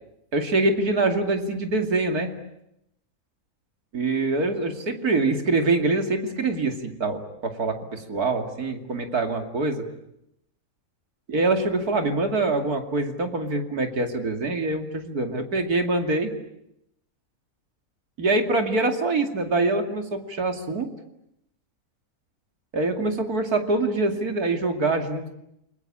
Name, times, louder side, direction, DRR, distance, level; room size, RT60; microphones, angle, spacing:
voice 1, 0.3-2.3 3.9-9.8 11.3-16.3 18.2-20.9 22.7-25.3, right 2 dB, 80° right, 5 dB, 3.1 m, -24 dB
29.5 x 21.0 x 8.8 m, 0.82 s
omnidirectional pair, 1.6 m